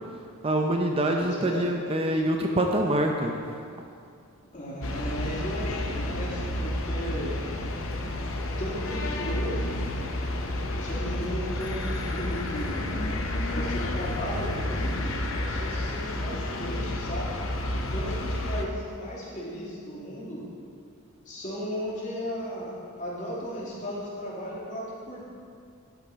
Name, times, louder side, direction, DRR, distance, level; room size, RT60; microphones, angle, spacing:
voice 1, 0.4-3.4, right 1 dB, 25° right, 2 dB, 0.6 m, -25 dB
voice 2, 1.2-1.6 4.5-7.4 8.6-9.9 10.8-12.9 13.5-17.3 17.9-20.4 21.3-22.7 23.0-25.2, equal, 35° left, -6 dB, 2.6 m, -35 dB
sound 1, 4.8-18.7, left 1 dB, 60° left, 0.8 m, -30 dB
12.0 x 8.2 x 4.2 m, 2.4 s
head